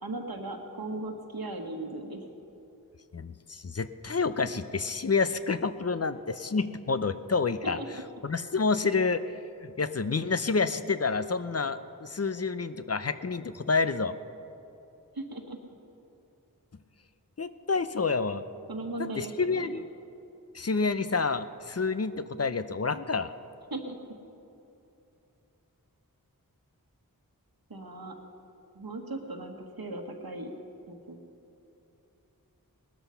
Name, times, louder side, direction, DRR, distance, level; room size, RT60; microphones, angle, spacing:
voice 1, 0.0-2.2 7.6-8.0 15.1-15.6 18.7-19.8 23.7-24.0 27.7-28.1 28.7-30.5 30.9-31.2, right 2 dB, 85° right, 4 dB, 1.5 m, -37 dB
voice 2, 3.1-7.8 8.2-9.2 9.6-14.1 17.4-18.4 19.0-19.8 20.5-23.3, left 4 dB, 45° left, 12 dB, 0.6 m, -29 dB
19.0 x 13.0 x 5.6 m, 2.8 s
wide cardioid pair, 50°, 35 cm